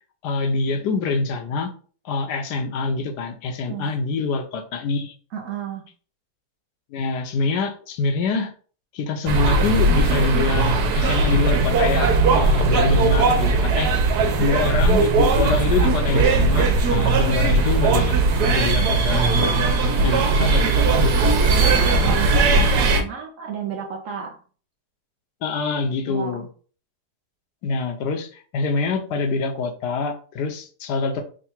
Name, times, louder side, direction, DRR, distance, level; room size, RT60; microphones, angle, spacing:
voice 1, 0.2-1.7 2.0-5.1 6.9-8.5 8.9-13.9 14.4-18.2 18.5-19.7 20.0-21.3 25.4-26.5 27.6-31.2, left 4 dB, 80° left, 5 dB, 1.3 m, -25 dB
voice 2, 5.3-5.9 16.9-17.1 20.0-24.4 26.1-26.5, right 6 dB, 60° right, 1 dB, 0.9 m, -33 dB
sound 1, 9.3-23.0, right 3 dB, 75° right, 1.3 m, -18 dB
3.7 x 2.2 x 4.3 m, 0.41 s
omnidirectional pair, 1.8 m